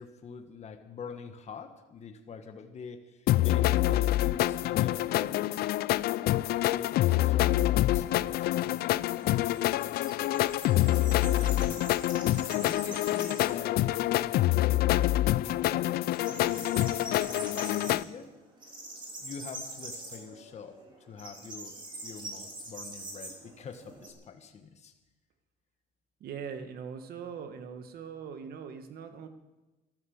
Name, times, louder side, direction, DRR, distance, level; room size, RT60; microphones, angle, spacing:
voice 1, 0.0-5.6 6.6-10.5 11.3-11.9 12.5-13.9 14.1-16.0 16.3-18.3 19.2-24.9, left 5 dB, 40° left, 6 dB, 1.4 m, -45 dB
sound 1, 3.3-18.0, left 15 dB, 65° left, 0.4 m, -26 dB
sound 2, 7.8-13.7 14.1-14.2 14.6-15.4 15.6-24.1, right 1 dB, 30° right, 4.2 m, -44 dB
voice 2, 26.2-29.3, right 6 dB, 65° right, 8 dB, 1.7 m, -41 dB
13.5 x 12.5 x 7.2 m, 1.1 s
cardioid pair, 110°, 17 cm